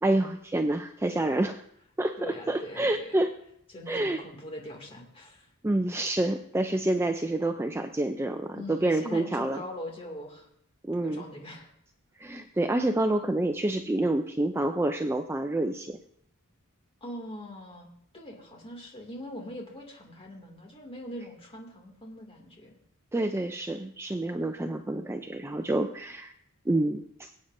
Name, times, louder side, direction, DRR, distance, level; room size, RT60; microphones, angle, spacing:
voice 1, 0.0-1.6 2.0-3.3 3.9-4.2 5.6-9.6 10.8-11.2 12.2-16.0 23.1-26.3 26.7-27.3, right 1 dB, 10° right, 6 dB, 0.4 m, -28 dB
voice 2, 2.2-3.1 3.7-5.5 8.5-10.5 11.0-11.7 17.0-17.9 18.1-22.7, left 1 dB, 25° left, 0 dB, 2.3 m, -42 dB
22.5 x 8.6 x 2.6 m, 0.71 s
head